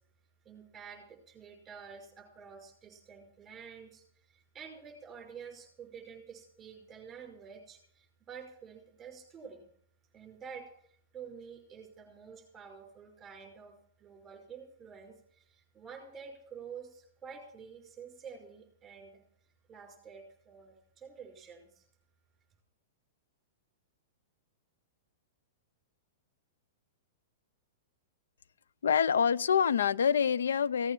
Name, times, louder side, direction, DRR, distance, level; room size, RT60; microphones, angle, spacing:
voice 1, 0.4-9.7 10.1-19.2 19.7-21.8, right 6 dB, 15° right, 4 dB, 5.4 m, -49 dB
voice 2, 28.8-30.9, left 7 dB, 90° left, 19 dB, 0.6 m, -26 dB
16.5 x 8.8 x 7.5 m, 0.63 s
hypercardioid pair, 145°, 0 cm